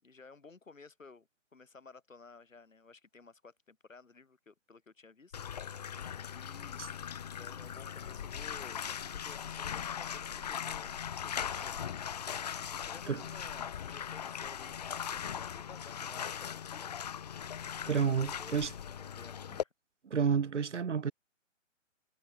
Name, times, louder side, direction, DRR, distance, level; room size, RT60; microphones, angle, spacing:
voice 1, 0.0-5.3 6.3-6.8 7.3-10.9 11.2-11.9 12.6-17.0 17.9-18.6 19.0-19.7, left 4 dB, 75° left, 5.6 m, -55 dB
Bathtub (filling or washing), 5.3-19.6, left 8 dB, 30° left, 0.7 m, -39 dB
voice 2, 17.9-18.7 20.1-21.1, right 6 dB, 60° right, 2.0 m, -30 dB
figure-of-eight pair, 145°, 39 cm